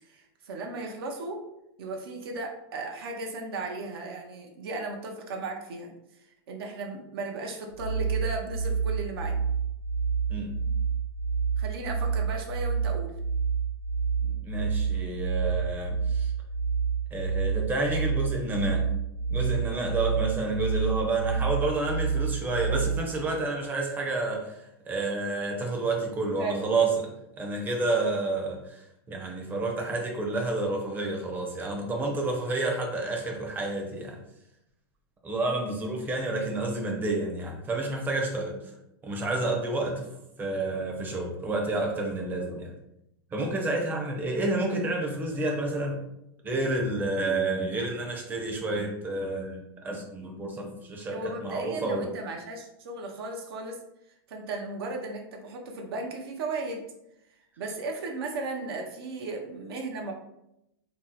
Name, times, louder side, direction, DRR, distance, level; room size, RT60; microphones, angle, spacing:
voice 1, 0.0-1.4 1.8-5.9 6.5-9.4 11.6-13.1 26.4-26.7 38.5-38.6 51.1-53.8 54.3-56.8 57.6-60.1, right 2 dB, 75° right, 1 dB, 0.6 m, -35 dB
sound 1, 7.7-23.0, right 6 dB, 45° right, 0.9 m, -28 dB
voice 2, 14.2-16.3 17.1-18.9 19.3-24.6 24.9-27.1 27.4-34.2 35.2-38.6 39.0-40.1 40.4-42.8 43.3-46.0 46.4-52.1, right 2 dB, 15° right, 1 dB, 0.6 m, -29 dB
2.7 x 2.0 x 3.9 m, 0.84 s
supercardioid pair, 150°, 13 cm